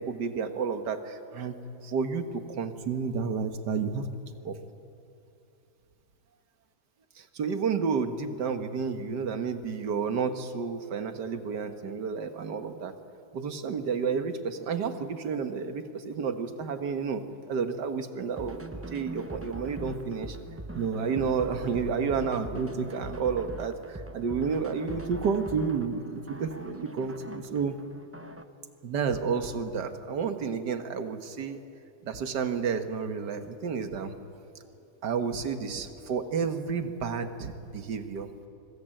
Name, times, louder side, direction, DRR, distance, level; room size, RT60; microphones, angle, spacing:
voice 1, 0.0-1.6 1.8-4.1 4.4-4.6 7.2-13.0 13.3-20.4 20.7-27.8 28.8-31.6 32.0-34.1 35.0-38.3, right 5 dB, 70° right, 8 dB, 2.0 m, -31 dB
sound 1, 18.3-28.5, right 2 dB, 15° right, 0.6 m, -42 dB
25.0 x 21.0 x 9.1 m, 2.7 s
omnidirectional pair, 1.9 m